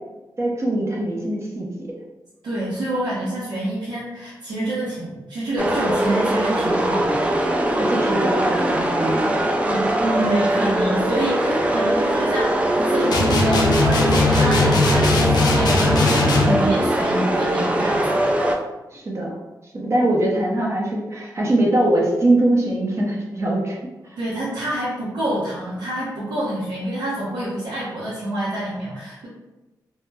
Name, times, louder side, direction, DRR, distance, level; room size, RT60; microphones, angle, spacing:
voice 1, 0.4-1.9 7.8-9.9 16.5-16.8 18.9-19.3 19.7-23.8 24.0-24.1, right 1 dB, 40° right, -2 dB, 0.7 m, -22 dB
voice 2, 2.4-7.2 10.0-18.3 24.2-29.3, right 1 dB, 90° right, -9 dB, 0.7 m, -27 dB
sound 1, 5.6-18.6, right 1 dB, 15° right, 0.3 m, -21 dB
sound 2, 13.1-16.6, left 3 dB, 65° left, 0.4 m, -19 dB
2.1 x 2.0 x 3.3 m, 1.1 s
cardioid pair, 80°, 7 cm